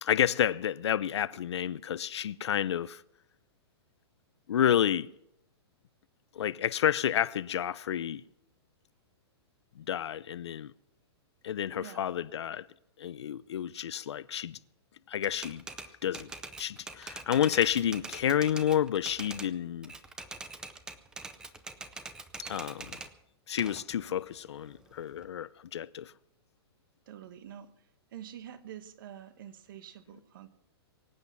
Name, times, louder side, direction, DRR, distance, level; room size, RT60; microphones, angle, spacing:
voice 1, 0.0-3.0 4.5-5.1 6.3-8.2 9.8-10.7 11.4-12.7 13.0-14.6 15.1-16.3 16.6-19.9 22.4-22.9 23.5-26.1, left 10 dB, 90° left, 0.6 m, -30 dB
voice 2, 11.8-12.1 27.1-27.7 28.1-30.5, right 10 dB, 50° right, 1.3 m, -47 dB
Typewriter, 15.2-19.5 19.8-23.1 23.6-25.2, right 3 dB, 5° right, 0.5 m, -44 dB
23.5 x 8.6 x 5.9 m
hypercardioid pair, 165°, 14 cm